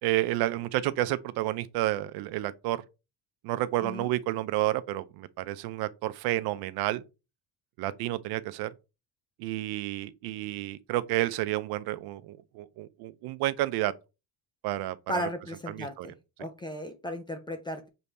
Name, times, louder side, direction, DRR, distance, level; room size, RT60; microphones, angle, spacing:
voice 1, 0.0-2.8 3.4-7.0 7.8-8.7 9.4-13.9 14.6-15.3 15.7-16.1, right 15 dB, 65° right, 0.7 m, -30 dB
voice 2, 15.1-16.1 16.4-17.9, equal, 10° left, 0.3 m, -35 dB
6.9 x 3.4 x 4.1 m
cardioid pair, 180°, 40 cm